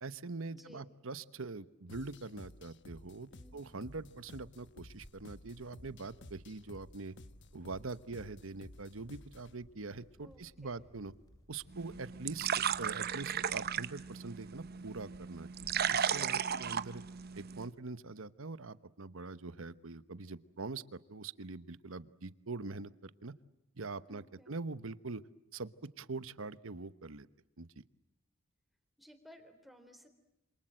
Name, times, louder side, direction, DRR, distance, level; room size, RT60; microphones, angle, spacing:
voice 1, 0.0-7.2 7.5-11.1 11.5-15.5 15.9-17.0 17.3-23.3 23.8-25.2 25.5-25.7 26.0-27.3 27.6-27.7, right 3 dB, 70° right, 15 dB, 1.1 m, -43 dB
voice 2, 0.5-0.8 3.3-3.6 10.2-10.8 24.1-24.6 29.0-30.1, equal, ahead, 6 dB, 3.8 m, -57 dB
sound 1, 1.9-9.6, left 2 dB, 60° left, 1.2 m, -55 dB
sound 2, 3.4-16.1, equal, 20° left, 7.3 m, -62 dB
sound 3, 11.7-17.7, right 8 dB, 50° right, 0.9 m, -36 dB
28.0 x 27.0 x 7.7 m, 0.90 s
head